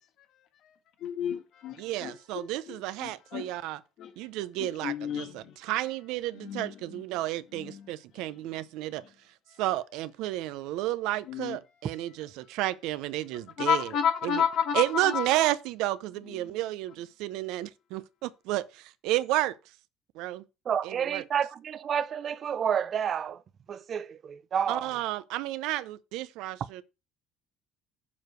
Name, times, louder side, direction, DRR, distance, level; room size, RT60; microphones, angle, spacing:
voice 1, 1.0-3.5 4.0-4.1 4.6-5.5 6.3-7.0 7.5-7.9 9.0-9.1 11.3-11.6 13.6-15.3 16.3-16.5, left 8 dB, 55° left, 1.5 m, -31 dB
voice 2, 1.8-3.8 4.2-9.0 9.6-13.9 14.2-14.4 14.7-19.5 20.1-20.4 20.8-21.2 24.7-26.8, right 15 dB, 75° right, 0.6 m, -31 dB
voice 3, 20.7-23.4 23.7-25.0, right 8 dB, 35° right, 0.3 m, -30 dB
7.2 x 4.7 x 6.1 m
cardioid pair, 150°, 0 cm